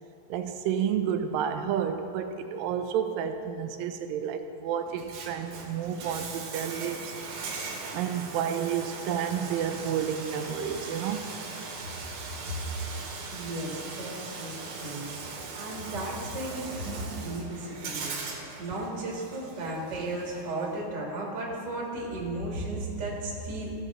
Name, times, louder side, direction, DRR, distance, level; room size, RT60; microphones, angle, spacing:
voice 1, 0.3-7.1 7.5-7.7 7.9-11.3, right 8 dB, 85° right, 7 dB, 2.3 m, -30 dB
Bathtub (filling or washing), 4.9-20.8, right 4 dB, 70° right, 2.5 m, -40 dB
voice 2, 12.9-15.1 15.5-18.1 18.6-23.7, right 1 dB, 35° right, -4 dB, 2.0 m, -35 dB
15.5 x 6.6 x 3.7 m, 2.6 s
omnidirectional pair, 3.9 m